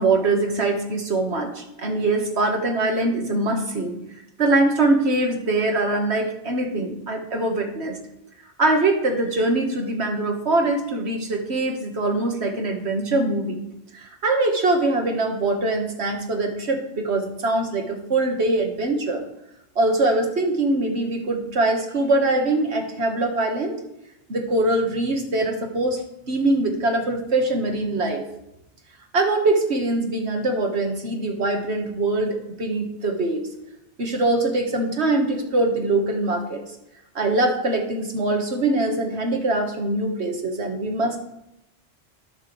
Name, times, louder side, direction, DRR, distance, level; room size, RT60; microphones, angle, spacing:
voice 1, 0.0-4.0 4.4-8.0 8.6-13.7 13.9-19.2 19.8-23.8 24.3-26.0 26.3-28.2 29.1-33.5 34.0-36.6 37.2-41.2, right 2 dB, 65° right, 3 dB, 2.0 m, -23 dB
20.0 x 6.7 x 3.4 m, 0.85 s
omnidirectional pair, 1.2 m